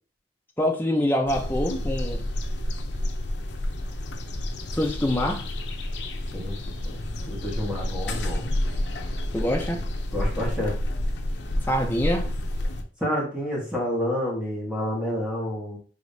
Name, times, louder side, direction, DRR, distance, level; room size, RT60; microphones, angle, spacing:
voice 1, 0.6-2.2 4.7-5.4 8.5-8.6 9.3-9.8 11.7-12.3, left 1 dB, 10° left, 1 dB, 0.6 m, -25 dB
sound 1, 1.3-12.8, left 1 dB, 75° left, 0.6 m, -29 dB
voice 2, 6.8-8.5 10.1-10.8 13.0-15.8, left 1 dB, 5° right, -4 dB, 1.4 m, -29 dB
5.0 x 3.0 x 2.7 m, 0.38 s
head